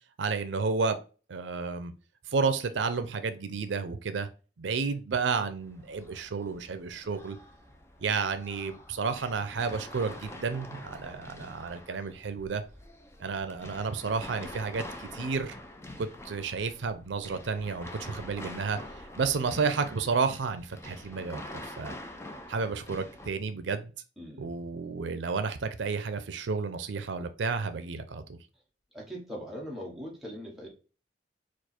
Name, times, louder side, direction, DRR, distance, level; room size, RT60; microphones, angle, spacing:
voice 1, 0.2-1.0 1.3-1.9 2.3-4.3 4.6-7.4 8.0-12.6 13.2-15.6 16.0-18.8 19.2-21.9 22.5-23.9 24.4-28.4, right 5 dB, 85° right, 10 dB, 0.5 m, -31 dB
sound 1, 5.5-23.3, left 1 dB, 15° left, 0.5 m, -46 dB
voice 2, 24.2-24.5 28.9-30.7, equal, ahead, -4 dB, 1.4 m, -40 dB
4.5 x 2.4 x 4.2 m, 0.35 s
head